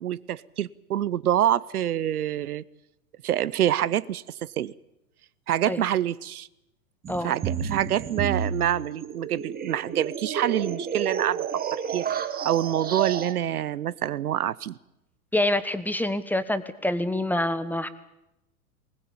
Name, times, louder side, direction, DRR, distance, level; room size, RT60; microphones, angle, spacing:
voice 1, 0.0-2.6 3.2-4.7 5.5-6.5 7.2-11.4 11.7-12.1 12.4-14.8, right 11 dB, 80° right, 20 dB, 0.8 m, -26 dB
sound 1, 7.1-13.3, right 7 dB, 20° right, 1.5 m, -31 dB
voice 2, 15.3-17.9, left 1 dB, 5° left, 13 dB, 1.1 m, -26 dB
20.5 x 19.5 x 8.7 m, 0.90 s
hypercardioid pair, 105°, 44 cm